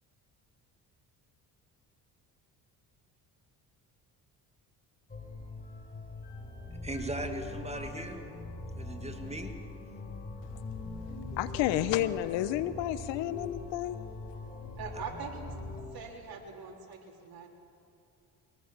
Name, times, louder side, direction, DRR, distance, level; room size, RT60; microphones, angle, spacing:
sound 1, 5.1-15.8, left 2 dB, 20° left, 5.6 m, -42 dB
sound 2, 6.6-14.8, left 5 dB, 55° left, 4.4 m, -58 dB
voice 1, 6.8-8.3 8.7-9.6, right 1 dB, 15° right, 5 dB, 2.3 m, -38 dB
voice 2, 11.4-14.1, left 13 dB, 85° left, 14 dB, 1.1 m, -31 dB
voice 3, 14.8-15.4 15.9-17.5, right 5 dB, 55° right, 1 dB, 4.0 m, -42 dB
22.5 x 18.5 x 7.4 m, 2.5 s
supercardioid pair, 80°, 43 cm